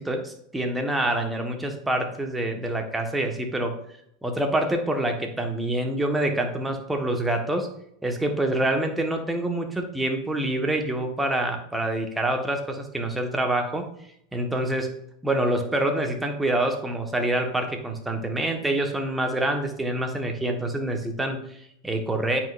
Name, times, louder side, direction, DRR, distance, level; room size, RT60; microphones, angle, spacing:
voice 1, 0.0-3.8 4.2-7.7 8.0-13.9 14.3-15.0 15.2-22.4, right 1 dB, 10° right, 4 dB, 1.5 m, -26 dB
9.0 x 5.4 x 2.6 m, 0.73 s
hypercardioid pair, 110°, 0 cm